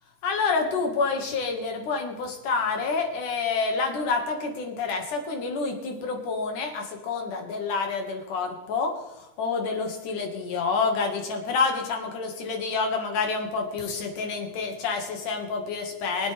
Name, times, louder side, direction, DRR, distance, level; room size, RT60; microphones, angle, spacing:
voice 1, 0.2-16.3, left 4 dB, 90° left, 3 dB, 3.4 m, -28 dB
24.0 x 8.0 x 3.4 m, 1.0 s
omnidirectional pair, 3.5 m